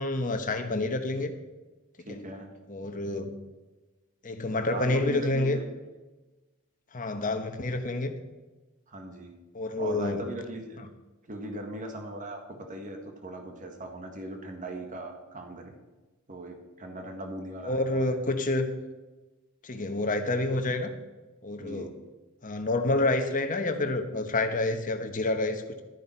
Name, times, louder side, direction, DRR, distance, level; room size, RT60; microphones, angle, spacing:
voice 1, 0.0-1.3 2.1-2.2 2.7-3.3 4.2-5.6 6.9-8.1 9.5-10.2 17.6-18.7 19.6-20.9 21.4-21.9 22.4-25.8, left 2 dB, 40° left, 7 dB, 1.1 m, -28 dB
voice 2, 2.1-2.5 4.7-5.6 8.9-9.3 9.8-10.8 11.3-15.7 16.3-18.2 21.6-21.9, right 1 dB, 35° right, 4 dB, 1.7 m, -39 dB
12.0 x 10.0 x 4.5 m, 1.2 s
head